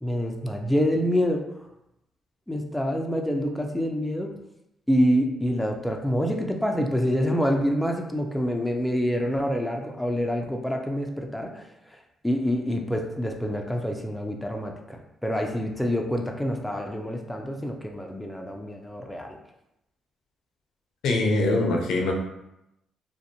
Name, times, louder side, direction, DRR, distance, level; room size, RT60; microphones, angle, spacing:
voice 1, 0.0-1.4 2.5-4.3 4.9-11.7 12.2-19.4, equal, 5° left, 2 dB, 0.3 m, -26 dB
voice 2, 21.0-22.1, left 2 dB, 80° left, 1 dB, 0.5 m, -23 dB
2.5 x 2.0 x 2.7 m, 0.85 s
cardioid pair, 90°, 0 cm